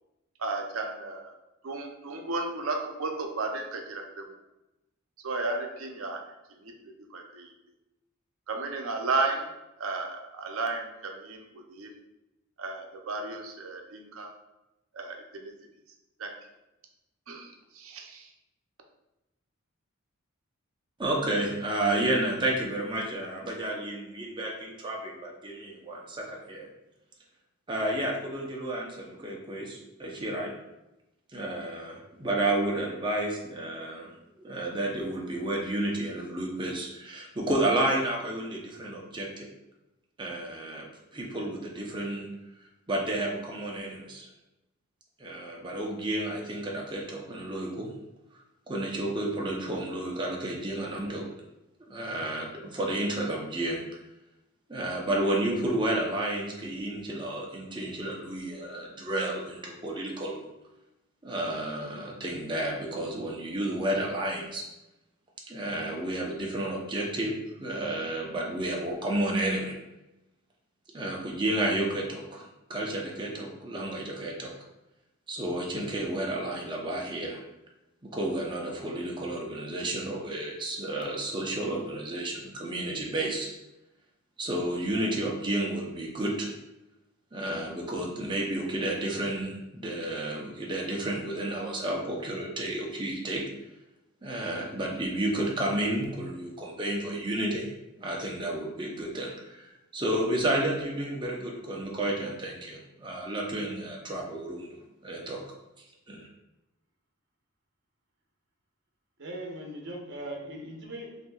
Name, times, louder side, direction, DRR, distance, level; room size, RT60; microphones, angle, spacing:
voice 1, 0.4-1.3 1.6-4.2 5.2-6.2 6.6-6.7 7.1-7.5 8.5-9.5 9.8-11.9 12.6-14.3 14.9-15.5 16.2-16.3 17.3-17.5 17.8-18.2, right 3 dB, 75° right, 2 dB, 0.6 m, -33 dB
voice 2, 21.0-26.7 27.7-30.5 31.3-34.1 34.4-39.5 40.2-40.8 41.1-42.3 42.9-44.3 45.2-47.9 48.7-51.3 51.9-53.8 54.7-60.4 61.2-64.6 65.5-67.3 67.6-69.8 70.9-74.5 75.3-77.4 78.1-83.5 84.4-86.5 87.3-93.4 94.2-97.7 98.0-104.7 105.0-105.4 106.1-106.3, right 1 dB, 20° right, -1 dB, 0.7 m, -31 dB
voice 3, 109.2-111.3, right 1 dB, 55° right, -1 dB, 0.9 m, -39 dB
5.9 x 2.7 x 2.3 m, 0.94 s
head